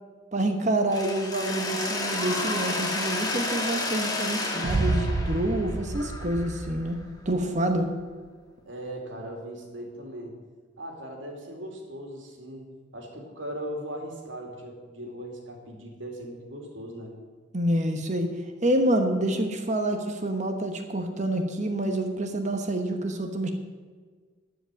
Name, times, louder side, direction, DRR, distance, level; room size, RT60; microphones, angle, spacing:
voice 1, 0.3-7.0 7.2-7.9 17.5-18.3 18.6-23.5, right 1 dB, 40° right, 6 dB, 1.0 m, -27 dB
Mechanisms, 0.9-6.8, left 2 dB, 20° left, 1.5 m, -31 dB
sound 1, 4.6-7.6, right 2 dB, 60° right, 0.6 m, -30 dB
voice 2, 8.7-10.4 10.8-12.7 12.9-17.1, right 1 dB, 75° right, 1 dB, 2.5 m, -38 dB
12.5 x 5.1 x 8.8 m, 1.5 s
head